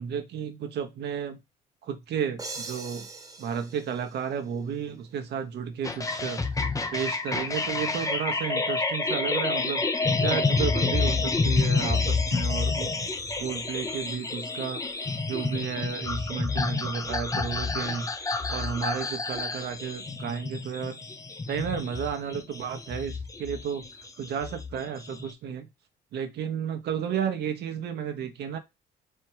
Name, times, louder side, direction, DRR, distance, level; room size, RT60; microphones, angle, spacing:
voice 1, 0.0-1.4 1.9-3.1 3.4-6.4 6.9-9.8 10.2-12.9 13.4-14.8 15.3-21.0 21.5-23.8 24.2-25.7 26.1-28.6, right 8 dB, 70° right, 1.0 m, -32 dB
sound 1, 2.4-5.1, right 3 dB, 20° right, 1.1 m, -42 dB
sound 2, 5.8-25.3, left 3 dB, 20° left, 0.6 m, -29 dB
4.5 x 2.2 x 4.6 m
cardioid pair, 85°, 18 cm